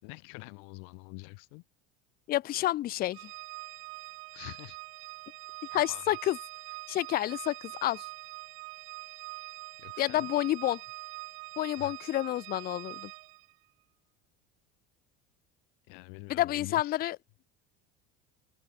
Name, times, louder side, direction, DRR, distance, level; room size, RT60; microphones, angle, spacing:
voice 1, 0.0-1.6 4.3-4.8 5.7-6.0 9.8-10.3 11.8-11.9 15.9-17.0, left 40 dB or more, 80° left, 6.7 m, -46 dB
voice 2, 2.3-3.3 5.7-6.4 6.9-8.1 10.0-10.8 11.6-13.1 16.3-17.2, left 14 dB, 30° left, 0.5 m, -29 dB
Organ, 3.1-13.5, right 34 dB, 85° right, 3.1 m, -44 dB
cardioid pair, 145°, 29 cm